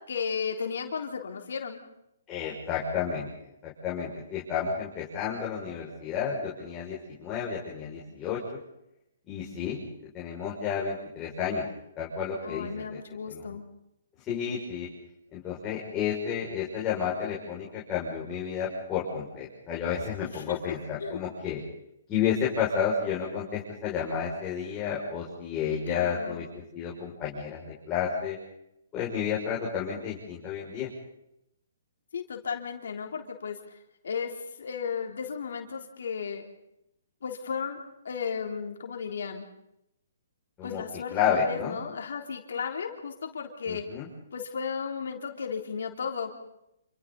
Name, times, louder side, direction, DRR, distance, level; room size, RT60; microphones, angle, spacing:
voice 1, 0.1-1.8 8.1-8.2 12.4-13.6 20.2-20.7 21.0-21.3 25.9-26.4 32.1-33.8 34.0-36.4 37.2-37.8 38.0-39.5 40.6-43.9 44.3-46.3, left 6 dB, 70° left, 3 dB, 3.6 m, -34 dB
voice 2, 2.3-3.3 3.6-8.4 9.3-9.8 10.1-11.6 12.0-13.0 13.3-13.4 14.3-14.9 15.3-21.6 22.1-26.4 26.7-28.4 28.9-30.9 40.6-40.8 41.1-41.8 43.7-44.1, left 7 dB, 20° left, -6 dB, 6.4 m, -31 dB
28.5 x 28.0 x 4.2 m, 0.82 s
hypercardioid pair, 150°, 0 cm